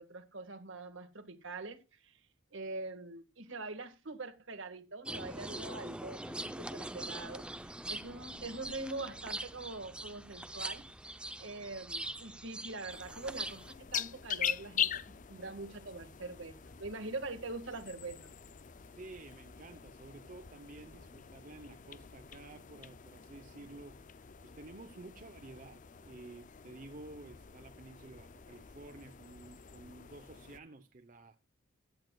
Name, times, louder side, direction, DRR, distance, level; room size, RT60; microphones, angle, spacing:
voice 1, 0.0-2.2 2.5-7.4 7.9-10.8 11.4-18.3 23.6-23.7, right 3 dB, 65° right, 1.8 m, -44 dB
sound 1, 5.1-13.7, right 1 dB, 5° right, 0.6 m, -43 dB
sound 2, 12.9-30.6, left 9 dB, 40° left, 0.5 m, -43 dB
voice 2, 18.9-24.0 24.4-31.4, right 2 dB, 40° right, 0.8 m, -52 dB
16.0 x 11.5 x 2.4 m
head